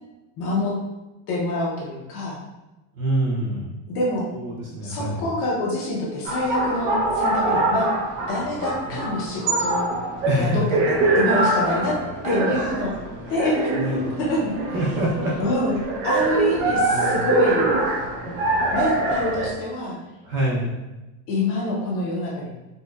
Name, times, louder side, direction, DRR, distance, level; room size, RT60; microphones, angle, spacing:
voice 1, 0.4-0.8 1.3-2.4 3.9-4.3 4.8-7.9 8.3-9.8 10.4-12.0 12.2-12.9 13.3-14.5 15.4-17.7 18.2-18.3 18.7-20.0 21.3-22.5, left 1 dB, 35° left, -4 dB, 0.5 m, -26 dB
voice 2, 2.9-3.7 4.3-5.3 8.9-9.1 10.2-10.7 12.5-12.8 13.2-13.4 13.7-14.1 14.7-15.4 16.3-17.3 20.2-20.8, right 1 dB, 30° right, -4 dB, 0.4 m, -26 dB
sound 1, 6.2-19.5, right 2 dB, 80° right, 0.8 m, -24 dB
4.3 x 2.1 x 2.2 m, 1.0 s
cardioid pair, 180°, 40 cm